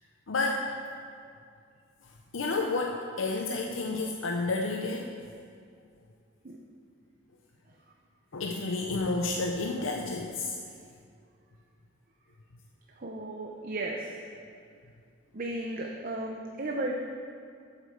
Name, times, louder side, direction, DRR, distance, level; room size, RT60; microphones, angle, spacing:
voice 1, 0.3-0.6 2.3-5.1 8.3-10.6, left 3 dB, 80° left, 1 dB, 0.7 m, -30 dB
voice 2, 13.0-14.2 15.3-17.0, right 2 dB, 45° right, 0 dB, 0.7 m, -34 dB
8.2 x 8.1 x 6.5 m, 2.3 s
head